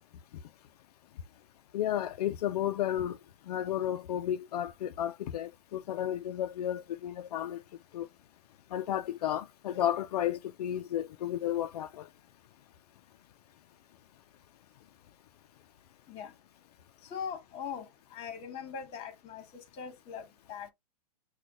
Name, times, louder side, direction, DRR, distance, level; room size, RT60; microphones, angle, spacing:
voice 1, 1.7-3.2 3.5-7.6 7.9-8.1 8.7-12.1, left 11 dB, 80° left, 0.4 m, -32 dB
voice 2, 17.1-17.9 18.1-19.4 19.8-20.7, left 7 dB, 30° left, 1.3 m, -40 dB
6.1 x 2.3 x 2.5 m
hypercardioid pair, 135°, 20 cm